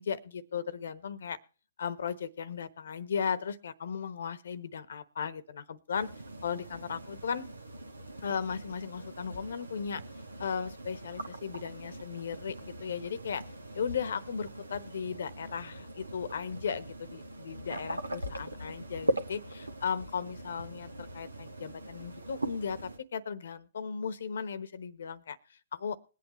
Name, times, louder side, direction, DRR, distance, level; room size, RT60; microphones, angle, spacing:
voice 1, 0.0-1.4 1.8-6.1 6.4-7.5 8.2-10.0 10.4-13.4 13.7-26.0, left 6 dB, 65° left, 16 dB, 1.0 m, -36 dB
sound 1, 5.9-23.0, right 1 dB, 90° right, 1.2 m, -41 dB
21.5 x 8.5 x 3.0 m, 0.37 s
figure-of-eight pair, 120°, 0 cm